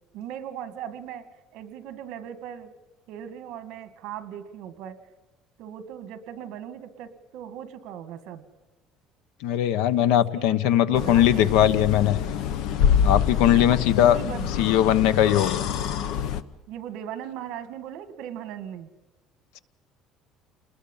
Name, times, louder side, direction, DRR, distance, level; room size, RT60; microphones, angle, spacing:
voice 1, 0.1-1.3 1.5-2.7 3.1-5.0 5.6-8.4 10.0-11.5 13.5-13.6 14.0-14.5 16.7-18.9, right 10 dB, 55° right, 10 dB, 2.1 m, -38 dB
voice 2, 9.4-12.2 13.0-14.2 14.6-15.7, left 11 dB, 80° left, 15 dB, 1.2 m, -20 dB
sound 1, 10.9-16.4, left 8 dB, 60° left, 1.1 m, -26 dB
28.5 x 20.5 x 5.7 m, 1.1 s
cardioid pair, 175°, 0 cm